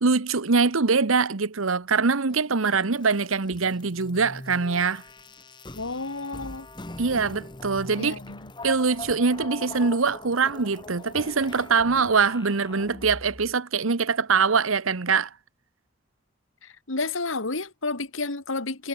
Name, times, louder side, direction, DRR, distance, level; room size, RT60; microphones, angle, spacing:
voice 1, 0.0-5.0 7.0-8.1 8.6-15.3, right 4 dB, 85° right, 1.1 m, -23 dB
sound 1, 2.3-13.5, left 2 dB, 20° left, 1.3 m, -42 dB
voice 2, 5.7-6.7 8.0-8.5 16.6-18.9, left 3 dB, 75° left, 2.2 m, -31 dB
head